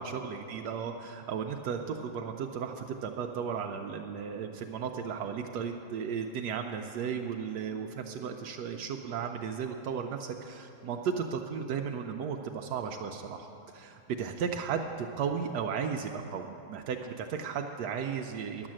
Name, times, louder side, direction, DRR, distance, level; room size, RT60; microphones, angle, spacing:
voice 1, 0.0-18.7, right 6 dB, 80° right, 4 dB, 1.1 m, -35 dB
11.0 x 7.2 x 7.5 m, 2.8 s
omnidirectional pair, 1.8 m